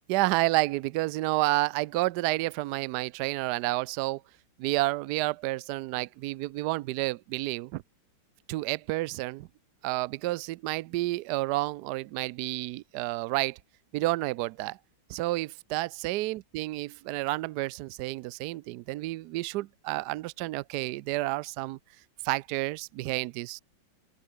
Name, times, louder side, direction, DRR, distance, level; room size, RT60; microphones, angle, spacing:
voice 1, 0.1-4.2 4.6-7.8 8.5-9.5 9.8-13.6 13.9-14.8 15.1-21.8 22.2-23.6, right 19 dB, 85° right, 0.8 m, -30 dB
open air
omnidirectional pair, 2.3 m